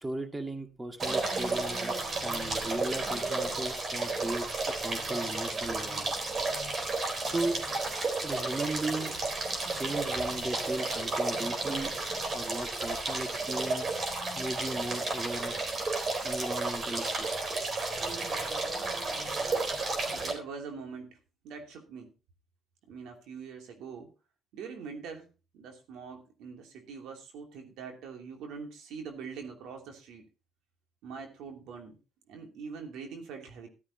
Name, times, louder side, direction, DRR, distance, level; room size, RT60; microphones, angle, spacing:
voice 1, 0.0-4.5 4.8-6.3 7.2-7.6 8.2-9.1 9.7-11.9 12.3-14.0 14.4-15.6 16.2-17.6, right 1 dB, 20° right, 5 dB, 2.1 m, -36 dB
sound 1, 1.0-20.3, right 3 dB, 45° right, 4.0 m, -32 dB
voice 2, 19.4-19.7 20.1-21.2 21.4-22.1 22.9-24.1 24.5-25.3 25.5-30.3 31.0-32.0 32.3-33.7, right 5 dB, 90° right, 3 dB, 2.8 m, -43 dB
13.5 x 13.0 x 2.8 m, 0.31 s
cardioid pair, 90°, 0 cm